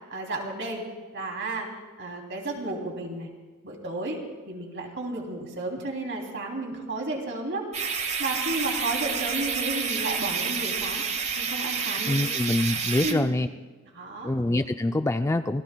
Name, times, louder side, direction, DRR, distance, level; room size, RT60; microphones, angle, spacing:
voice 1, 0.1-0.9 1.1-1.7 2.0-3.3 3.6-7.7 8.2-11.0 11.4-12.1 13.0-13.4 13.9-14.3, right 2 dB, 55° right, 1 dB, 3.0 m, -32 dB
sound 1, 7.7-13.1, right 6 dB, 30° right, 1.1 m, -29 dB
voice 2, 12.1-13.5 14.2-15.6, left 2 dB, 15° left, 8 dB, 0.3 m, -25 dB
27.0 x 17.5 x 2.3 m, 1.4 s
head